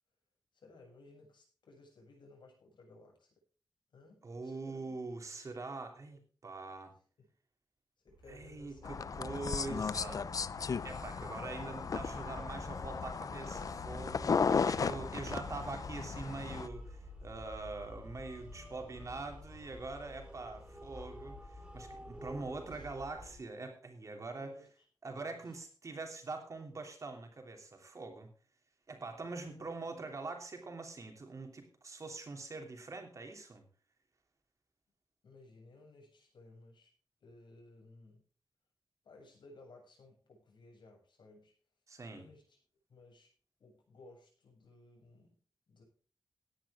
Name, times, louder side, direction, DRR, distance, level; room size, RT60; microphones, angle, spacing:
voice 1, 0.5-3.3 3.9-5.0 5.3-5.4 7.2-7.3 8.0-9.0 14.9-15.2 21.9-22.9 24.4-24.7 25.0-25.4 29.4-29.7 35.2-36.9 37.2-38.2 39.0-41.5 42.1-42.6 42.9-43.3 43.6-45.4 45.7-45.8, left 2 dB, 90° left, 0 dB, 7.9 m, -59 dB
voice 2, 4.2-6.9 8.3-10.2 10.8-24.5 25.0-28.3 28.9-33.6 41.9-42.3, right 3 dB, 45° right, 4 dB, 3.2 m, -44 dB
sound 1, 8.1-23.4, left 1 dB, 10° right, 4.0 m, -50 dB
sound 2, 8.8-16.7, left 5 dB, 50° left, 0.6 m, -35 dB
17.5 x 10.0 x 3.7 m, 0.39 s
wide cardioid pair, 165°, 8 cm